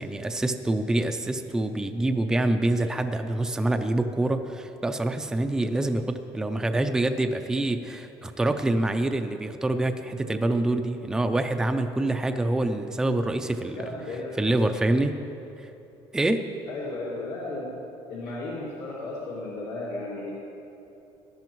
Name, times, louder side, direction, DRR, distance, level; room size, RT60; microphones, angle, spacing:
voice 1, 0.0-13.9 14.4-15.1 15.6-15.7 16.1-16.4, right 2 dB, 5° right, 7 dB, 0.4 m, -26 dB
voice 2, 13.7-14.4 16.7-17.8 18.1-20.3, left 2 dB, 75° left, -5 dB, 2.1 m, -34 dB
17.5 x 12.0 x 3.1 m, 2.9 s
cardioid pair, 170°, 10 cm